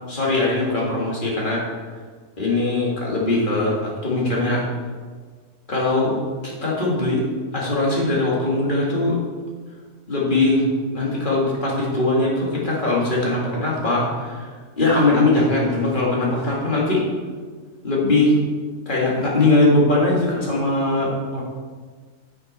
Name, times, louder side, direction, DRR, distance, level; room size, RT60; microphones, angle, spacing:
voice 1, 0.1-1.6 2.4-4.6 5.7-6.2 6.4-7.2 7.5-9.2 10.1-10.7 10.9-14.5 14.8-17.1 17.8-18.4 18.9-21.4, left 2 dB, 35° left, -4 dB, 2.2 m, -20 dB
7.5 x 6.1 x 5.2 m, 1.5 s
omnidirectional pair, 1.6 m